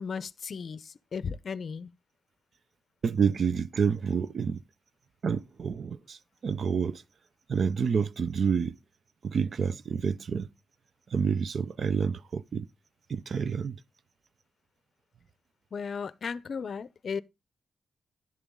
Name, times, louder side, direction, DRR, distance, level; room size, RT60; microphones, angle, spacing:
voice 1, 0.0-1.9 15.7-17.2, left 6 dB, 50° left, 0.6 m, -35 dB
voice 2, 3.0-4.6 5.2-7.0 7.5-8.7 9.2-10.5 11.1-12.7 13.1-13.8, right 6 dB, 55° right, 0.5 m, -28 dB
10.5 x 7.1 x 3.6 m
wide cardioid pair, 150°, 0 cm